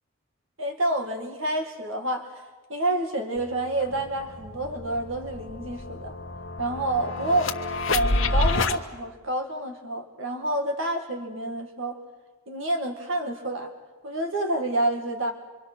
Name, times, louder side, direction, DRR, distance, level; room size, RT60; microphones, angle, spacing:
voice 1, 0.6-2.3 2.7-6.1 6.6-7.5 7.9-12.0 12.5-13.7 14.0-15.3, right 1 dB, 75° right, 5 dB, 2.1 m, -28 dB
sound 1, 3.4-3.5 3.8-8.8, left 2 dB, 70° left, 1.3 m, -28 dB
25.0 x 24.5 x 6.3 m, 1.3 s
head